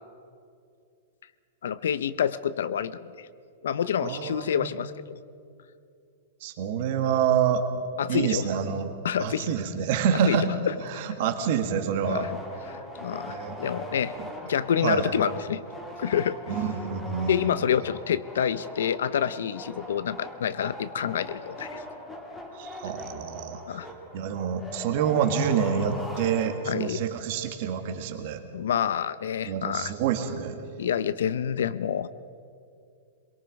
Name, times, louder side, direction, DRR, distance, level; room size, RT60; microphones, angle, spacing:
voice 1, 1.6-3.3 3.6-4.9 8.0-8.5 9.0-9.5 10.3-10.4 10.7-10.8 12.0-12.3 12.7-14.1 14.4-15.6 16.0-16.4 17.3-21.8 23.7-23.9 26.7-27.0 28.5-29.9 30.8-32.1, left 8 dB, 90° left, 15 dB, 0.6 m, -27 dB
voice 2, 4.0-4.7 6.4-7.6 8.1-8.9 9.2-10.6 10.8-12.3 13.2-13.6 14.2-14.3 14.8-15.1 16.5-17.5 22.5-23.8 24.1-28.4 29.5-30.6, right 7 dB, 45° right, 6 dB, 1.8 m, -27 dB
sound 1, 12.0-27.0, equal, 5° left, 2.0 m, -41 dB
23.0 x 22.5 x 5.3 m, 2.4 s
supercardioid pair, 175°, 0 cm